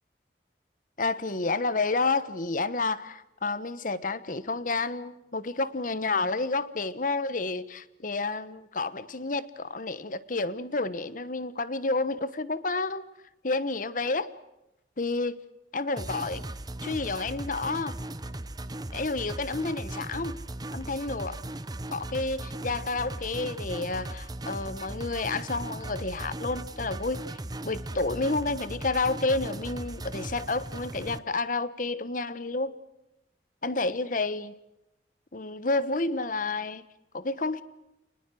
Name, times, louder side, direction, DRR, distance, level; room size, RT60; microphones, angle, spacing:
voice 1, 1.0-13.0 13.4-14.3 15.0-15.4 15.7-16.5 16.8-18.0 18.9-20.4 20.7-21.4 21.9-27.2 27.6-32.7 33.6-34.5 35.3-36.8 37.1-37.6, left 3 dB, 50° left, 15 dB, 1.2 m, -30 dB
sound 1, 16.0-31.2, right 1 dB, 25° right, 0.9 m, -38 dB
29.5 x 20.0 x 7.7 m, 0.89 s
head